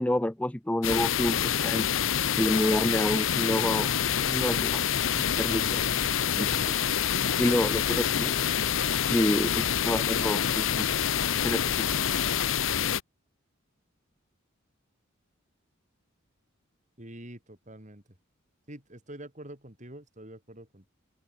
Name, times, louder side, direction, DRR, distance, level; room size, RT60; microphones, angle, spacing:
voice 1, 0.0-1.9 2.4-3.9 4.2-4.8 5.1-6.0 6.4-6.8 7.4-8.4 9.1-10.9 11.4-12.0, left 1 dB, 5° left, 0.4 m, -28 dB
sound 1, 0.8-13.0, left 9 dB, 70° left, 0.8 m, -27 dB
Wind instrument woodwind instrument, 2.5-12.6, left 4 dB, 50° left, 6.9 m, -44 dB
voice 2, 17.0-18.0 18.7-20.9, right 1 dB, 35° right, 5.2 m, -46 dB
open air
head